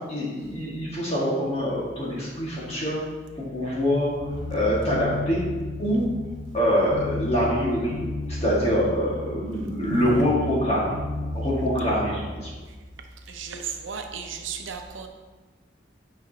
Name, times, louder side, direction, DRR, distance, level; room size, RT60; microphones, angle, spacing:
voice 1, 0.1-3.0 3.4-5.4 5.8-6.0 6.5-8.0 8.3-10.9 11.3-12.5, equal, 30° left, -5 dB, 1.8 m, -25 dB
sound 1, 4.2-12.3, left 2 dB, 55° left, 0.6 m, -33 dB
voice 2, 13.3-15.1, right 6 dB, 80° right, 4 dB, 0.7 m, -35 dB
9.3 x 5.1 x 2.8 m, 1.3 s
head